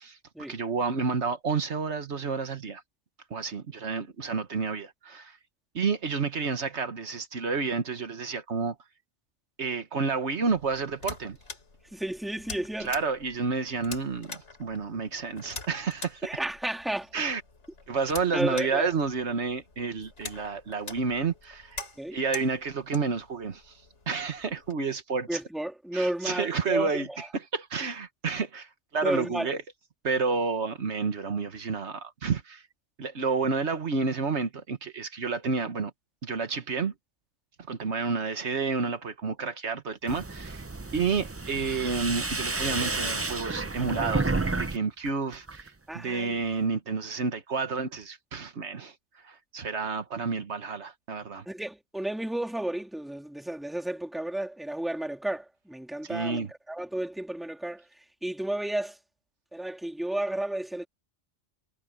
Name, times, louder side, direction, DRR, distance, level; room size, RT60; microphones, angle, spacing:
voice 1, 0.5-2.8 3.3-5.4 5.7-8.7 9.6-11.4 12.8-16.2 17.1-17.4 17.9-21.8 22.1-23.7 24.1-25.4 25.9-29.6 30.0-32.6 33.0-35.9 36.2-36.9 37.7-40.6 40.9-48.9 49.2-51.4 56.0-56.5, right 4 dB, 70° right, 1.6 m, -30 dB
sound 1, 10.5-24.7, left 3 dB, 80° left, 3.3 m, -45 dB
voice 2, 11.9-12.9 16.2-17.1 18.3-18.9 22.0-22.2 25.3-27.3 29.0-29.5 45.9-46.4 51.5-57.8 58.2-59.0 59.5-60.9, right 1 dB, ahead, 1.9 m, -32 dB
sound 2, 40.1-44.8 45.1-45.7, right 3 dB, 20° right, 0.4 m, -31 dB
omnidirectional pair, 1.2 m